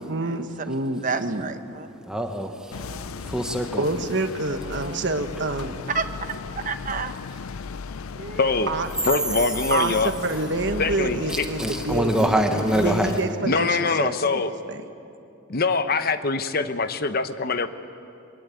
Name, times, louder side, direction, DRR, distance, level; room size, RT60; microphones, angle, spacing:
voice 1, 0.1-1.5 3.8-5.7 8.7-8.9 9.7-14.4 14.7-14.8, right 2 dB, 55° right, 7 dB, 1.4 m, -27 dB
voice 2, 1.0-1.9 2.8-3.3 4.6-5.0 5.9-6.3 6.6-7.1 8.1-8.5, right 4 dB, 40° right, 8 dB, 1.0 m, -31 dB
voice 3, 2.1-3.8 11.3-13.1, right 1 dB, 5° right, 3 dB, 1.2 m, -25 dB
sound 1, 2.7-13.3, left 5 dB, 90° left, 0.5 m, -36 dB
voice 4, 8.4-8.7 9.0-10.1 10.8-11.5 13.4-14.5 15.5-17.7, left 4 dB, 45° left, 10 dB, 0.9 m, -23 dB
23.0 x 21.0 x 9.2 m, 2.7 s
head